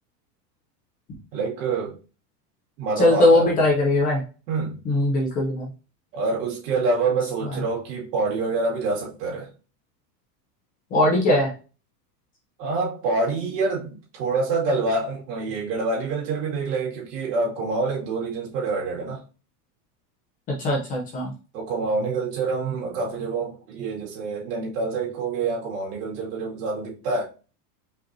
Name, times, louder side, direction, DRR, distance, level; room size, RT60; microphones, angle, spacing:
voice 1, 1.3-2.0 2.8-3.6 4.5-4.8 6.1-9.5 12.6-19.2 21.5-27.2, right 3 dB, 70° right, 2.3 m, -26 dB
voice 2, 3.0-4.2 4.8-5.7 7.4-7.6 10.9-11.5 20.6-21.3, left 1 dB, 20° left, 0.5 m, -20 dB
5.1 x 2.8 x 2.6 m
supercardioid pair, 160°, 49 cm